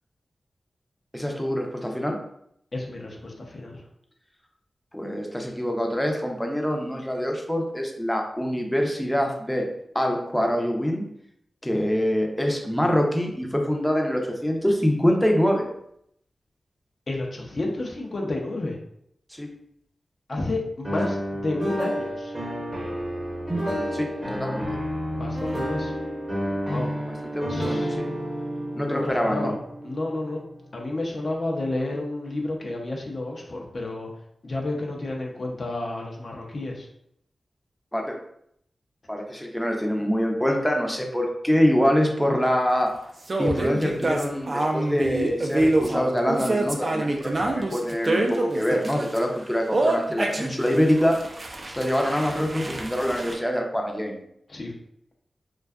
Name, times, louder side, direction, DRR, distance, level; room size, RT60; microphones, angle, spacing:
voice 1, 1.1-2.2 4.9-9.7 9.9-11.0 11.6-15.7 19.3-19.5 23.5-24.6 27.1-28.0 28.8-29.5 37.9-38.1 39.1-42.9 43.4-51.2 51.8-54.2, equal, 5° left, 1 dB, 0.5 m, -25 dB
voice 2, 2.7-3.8 17.1-18.8 20.3-22.3 25.1-25.9 26.7-27.0 27.5-27.9 28.7-29.5 29.8-30.4 30.7-34.1 34.4-36.9 54.5-54.7, left 2 dB, 55° left, 0 dB, 0.5 m, -31 dB
sound 1, 20.8-30.8, equal, 30° right, 0.7 m, -30 dB
sound 2, 43.3-49.2 49.7-53.3, right 2 dB, 50° right, 0.4 m, -26 dB
2.5 x 2.2 x 2.3 m, 0.72 s
cardioid pair, 55°, 0 cm